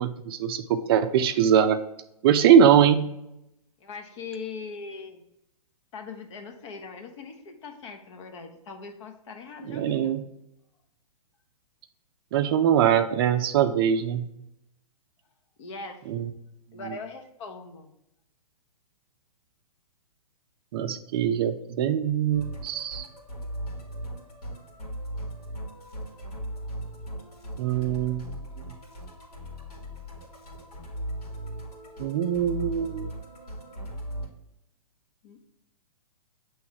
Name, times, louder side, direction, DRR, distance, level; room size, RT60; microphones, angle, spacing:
voice 1, 0.0-1.8 2.2-3.0 9.7-10.2 12.3-14.3 16.1-16.3 20.7-23.1 27.6-28.3 32.0-33.1, right 9 dB, 40° right, 9 dB, 0.4 m, -22 dB
voice 2, 3.8-5.2 5.9-10.2 15.6-16.0 16.7-17.9 35.2-35.5, left 4 dB, 50° left, 5 dB, 0.9 m, -40 dB
Musical instrument, 22.3-34.3, right 1 dB, 80° left, 1.9 m, -38 dB
6.9 x 3.1 x 4.6 m, 0.82 s
hypercardioid pair, 135°, 19 cm